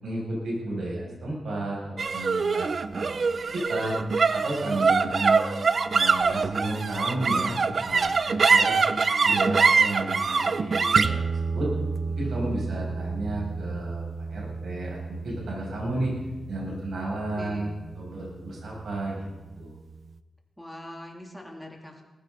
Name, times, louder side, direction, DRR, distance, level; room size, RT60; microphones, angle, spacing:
voice 1, 0.0-3.3 3.5-4.0 4.3-5.4 5.9-8.8 9.2-11.7 12.2-14.0 14.3-16.1 16.5-17.7 17.9-19.2 19.5-19.7, right 1 dB, 75° right, -4 dB, 6.7 m, -32 dB
sound 1, 2.0-18.5, right 4 dB, 50° right, 0.6 m, -25 dB
voice 2, 17.3-17.8 20.6-22.0, left 1 dB, ahead, 0 dB, 3.0 m, -42 dB
19.0 x 15.5 x 4.0 m, 1.2 s
cardioid pair, 90°, 0 cm